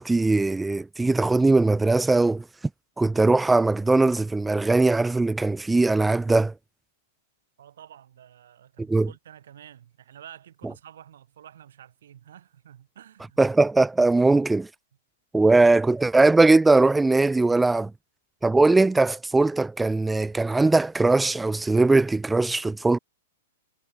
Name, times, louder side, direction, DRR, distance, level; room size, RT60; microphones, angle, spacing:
voice 1, 0.0-2.5 3.0-6.5 8.8-9.1 13.4-14.7 15.3-17.9 18.4-23.0, right 3 dB, 10° right, 0.5 m, -20 dB
voice 2, 7.6-13.4, right 10 dB, 75° right, 7.5 m, -49 dB
hypercardioid pair, 120°, 0 cm